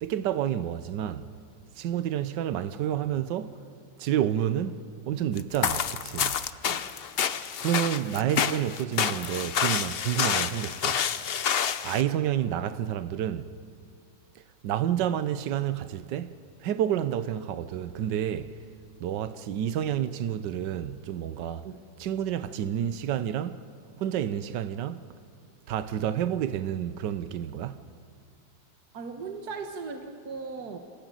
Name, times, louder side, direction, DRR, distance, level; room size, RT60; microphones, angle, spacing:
voice 1, 0.0-1.3 1.8-3.6 4.0-6.4 7.3-11.0 11.8-13.5 14.6-16.4 16.6-18.6 19.0-21.6 22.0-23.6 24.0-25.0 25.7-27.8, right 10 dB, 75° right, 1.4 m, -29 dB
sound 1, 5.4-12.0, left 8 dB, 80° left, 0.5 m, -28 dB
voice 2, 28.9-30.8, right 4 dB, 60° right, 1.7 m, -38 dB
27.0 x 15.5 x 9.2 m
omnidirectional pair, 2.0 m